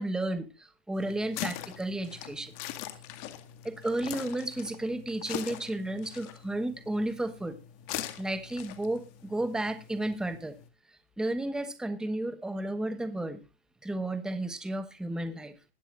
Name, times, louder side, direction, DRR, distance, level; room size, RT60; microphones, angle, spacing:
voice 1, 0.0-2.5 3.6-7.6 8.2-10.6 11.2-13.4 13.8-15.5, right 1 dB, ahead, 9 dB, 1.1 m, -33 dB
sound 1, 0.9-10.7, left 12 dB, 40° left, 2.0 m, -42 dB
21.0 x 8.9 x 2.4 m, 0.27 s
hypercardioid pair, 145°, 29 cm